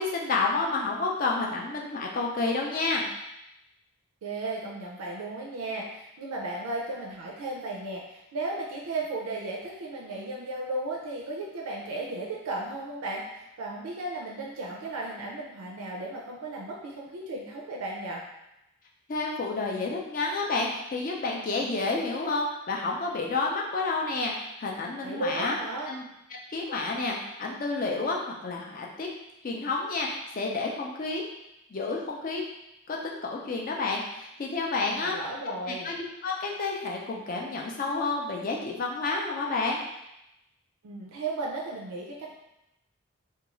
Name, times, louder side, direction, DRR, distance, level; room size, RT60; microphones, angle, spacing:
voice 1, 0.0-3.1 19.1-25.6 25.9-26.0 26.5-29.1 29.4-30.1 30.3-31.2 31.7-32.4 32.9-35.2 35.7-36.0 36.2-39.8, left 3 dB, 40° left, -1 dB, 0.4 m, -30 dB
voice 2, 4.2-18.2 25.0-25.9 35.0-35.9 40.8-42.3, right 2 dB, 85° right, -2 dB, 0.4 m, -35 dB
2.4 x 2.3 x 3.0 m, 0.88 s
head